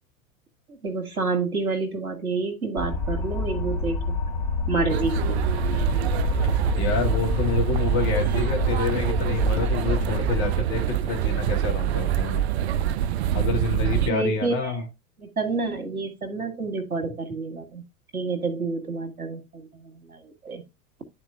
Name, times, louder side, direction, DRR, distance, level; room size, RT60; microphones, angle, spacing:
voice 1, 0.7-4.0 4.7-5.4 14.1-14.8 15.2-17.8 18.1-20.6, right 4 dB, 80° right, 6 dB, 1.8 m, -29 dB
sound 1, 2.8-10.5, left 3 dB, 5° left, 2.8 m, -27 dB
sound 2, 4.9-14.1, right 12 dB, 50° right, 0.4 m, -25 dB
voice 2, 6.8-12.4 13.3-14.8, left 5 dB, 35° left, 2 dB, 2.1 m, -28 dB
11.5 x 4.3 x 2.6 m, 0.23 s
figure-of-eight pair, 95°, 43 cm